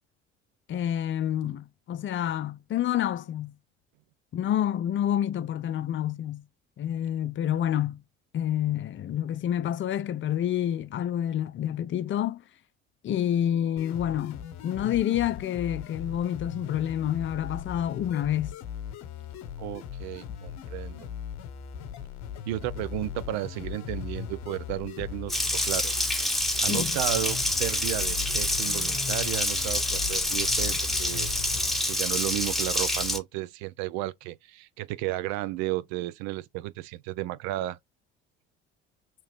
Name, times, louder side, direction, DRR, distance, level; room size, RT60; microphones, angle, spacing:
voice 1, 0.7-3.5 4.3-6.4 6.8-8.0 8.3-12.4 13.0-18.5 26.7-26.9, left 10 dB, 40° left, 0.5 m, -28 dB
sound 1, 13.8-31.8, left 9 dB, 60° left, 0.9 m, -39 dB
voice 2, 19.6-21.1 22.5-25.9 26.6-31.3 31.8-37.8, right 15 dB, 60° right, 0.4 m, -33 dB
Water tap faucet, 25.3-33.2, left 1 dB, ahead, 0.9 m, -27 dB
3.0 x 2.8 x 3.3 m
hypercardioid pair, 60°, 31 cm